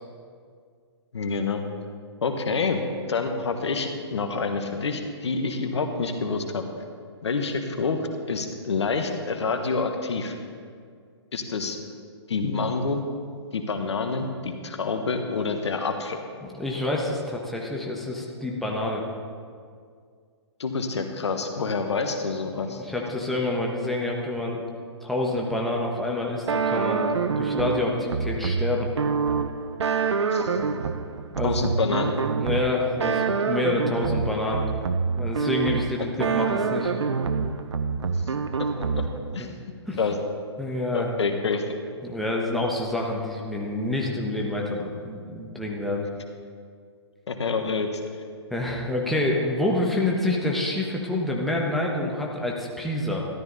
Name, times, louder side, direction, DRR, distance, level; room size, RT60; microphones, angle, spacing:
voice 1, 1.1-1.6 2.2-2.8 3.1-6.6 7.2-10.3 11.3-11.8 12.3-13.0 13.5-16.2 20.6-22.8 30.3-30.6 31.4-32.2 38.6-38.7 38.9-39.1 39.3-39.5 40.0-40.2 40.9-41.6 47.3-47.9, left 4 dB, 75° left, 6 dB, 1.3 m, -27 dB
voice 2, 16.4-19.0 22.6-24.6 25.0-27.0 27.4-28.9 31.3-31.6 32.4-34.6 35.2-36.9 39.9-40.0 40.6-41.1 42.0-46.1 48.5-53.3, left 2 dB, ahead, -2 dB, 1.3 m, -27 dB
sound 1, 26.5-39.4, right 5 dB, 75° right, 0.7 m, -26 dB
13.0 x 12.0 x 4.1 m, 2.1 s
hypercardioid pair, 135°, 15 cm